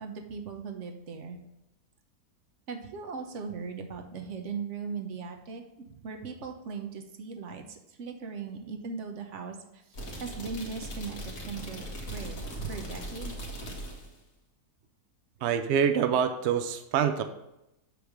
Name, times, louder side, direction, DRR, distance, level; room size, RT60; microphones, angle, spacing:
voice 1, 0.0-1.4 2.7-9.8 10.2-13.3, right 5 dB, 55° right, 4 dB, 1.0 m, -39 dB
sound 1, 9.9-14.2, equal, 60° left, 2.0 m, -39 dB
voice 2, 15.4-17.2, right 8 dB, 75° right, 8 dB, 0.6 m, -26 dB
8.0 x 3.4 x 6.4 m, 0.88 s
omnidirectional pair, 1.7 m